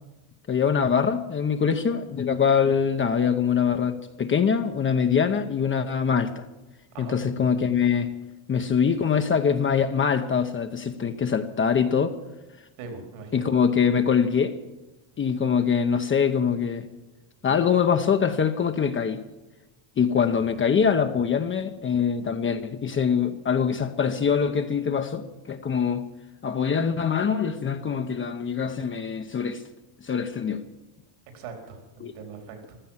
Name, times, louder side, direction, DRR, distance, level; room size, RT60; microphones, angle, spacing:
voice 1, 0.5-6.4 7.0-8.1 8.5-12.2 13.3-14.5 15.2-16.9 17.4-19.2 20.0-26.0 26.4-29.6 30.0-30.6 32.0-32.1, left 7 dB, 25° left, 0.8 m, -23 dB
voice 2, 6.9-7.3 11.0-11.1 12.8-13.4 31.3-32.8, right 4 dB, 75° right, 4.2 m, -41 dB
15.5 x 12.5 x 7.3 m
cardioid pair, 140°, 48 cm